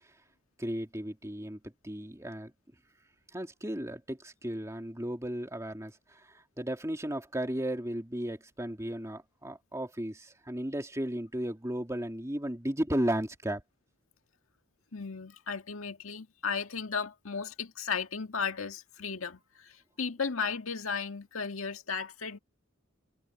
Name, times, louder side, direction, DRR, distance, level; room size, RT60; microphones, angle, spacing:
voice 1, 0.6-2.5 3.3-6.2 6.6-13.6, right 1 dB, 15° right, 2.9 m, -34 dB
voice 2, 14.9-22.4, left 5 dB, 90° left, 1.9 m, -35 dB
head